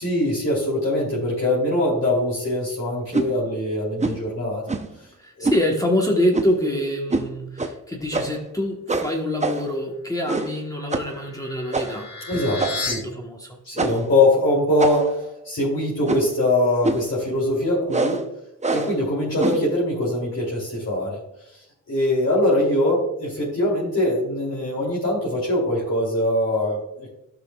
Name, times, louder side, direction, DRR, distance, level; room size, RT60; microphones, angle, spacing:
voice 1, 0.0-4.6 5.4-5.5 12.3-13.1 13.6-15.1 15.4-18.2 18.7-21.2 21.9-27.1, left 1 dB, 45° left, -5 dB, 3.0 m, -22 dB
sound 1, 3.1-3.3 4.0-4.2 4.7-5.0 5.4-5.6 6.3-6.6 7.1-7.3 7.6-7.7 8.1-8.5 8.9-9.8 10.3-10.6 10.9-11.1 11.7-12.0 12.6-13.0 13.8-14.1 14.8-15.2 16.0-16.4 16.8-17.1 17.9-18.2 18.6-19.0 19.4-19.7, right 3 dB, 20° right, 0.7 m, -25 dB
voice 2, 5.2-13.6, left 1 dB, 10° left, 0 dB, 1.1 m, -26 dB
sound 2, 10.7-12.9, left 3 dB, 65° left, 1.9 m, -34 dB
12.0 x 6.1 x 2.3 m, 0.83 s
cardioid pair, 85°, 34 cm